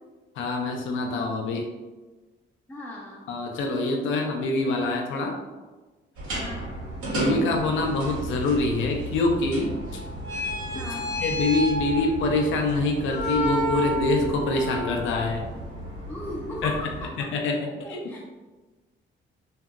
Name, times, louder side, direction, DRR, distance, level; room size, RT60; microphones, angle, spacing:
voice 1, 0.4-1.7 3.3-5.4 7.1-10.0 10.7-10.8 11.2-15.4 16.6-16.7 17.3-18.1, left 2 dB, 75° left, 2 dB, 0.5 m, -25 dB
voice 2, 2.7-3.3 6.3-6.7 10.7-11.1 16.1-17.3 17.6-18.2, left 1 dB, 10° left, -3 dB, 0.4 m, -37 dB
sound 1, 6.2-17.1, equal, 90° right, 1.1 m, -31 dB
2.8 x 2.7 x 2.3 m, 1.2 s
cardioid pair, 90°, 20 cm